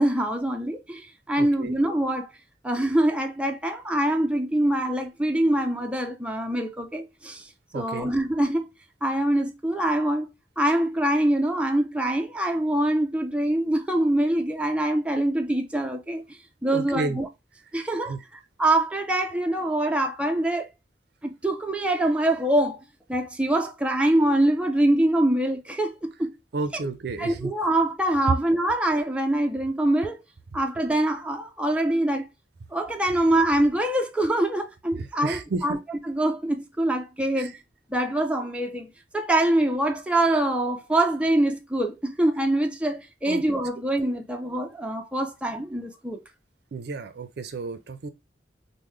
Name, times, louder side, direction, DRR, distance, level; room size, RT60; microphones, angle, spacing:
voice 1, 0.0-2.3 2.6-7.5 7.7-8.7 9.0-10.3 10.6-17.3 17.7-20.7 21.2-22.8 23.1-26.3 26.7-26.9 27.2-30.2 30.5-32.3 32.7-35.8 36.1-37.5 37.9-46.2, right 1 dB, 5° right, 0.4 m, -24 dB
voice 2, 1.4-1.7 7.7-8.1 16.7-17.2 18.1-18.2 26.5-27.5 35.2-35.8 37.4-37.5 43.2-43.4 46.7-48.1, right 3 dB, 65° right, 0.5 m, -31 dB
3.6 x 2.1 x 3.0 m
head